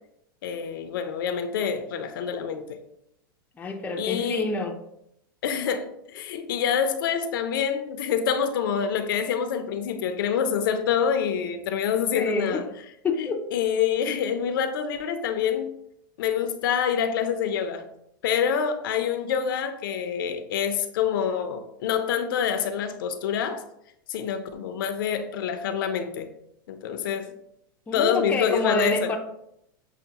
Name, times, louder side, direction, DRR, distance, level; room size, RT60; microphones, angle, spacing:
voice 1, 0.4-2.8 4.0-4.5 5.4-12.6 13.1-15.7 16.2-17.8 18.2-23.6 24.1-26.3 26.7-27.3 27.9-29.2, left 7 dB, 70° left, 8 dB, 0.5 m, -26 dB
voice 2, 3.6-4.8 12.1-12.6 13.0-13.4 27.9-29.2, left 3 dB, 15° left, 3 dB, 0.5 m, -27 dB
6.3 x 2.1 x 2.8 m, 0.77 s
hypercardioid pair, 125°, 12 cm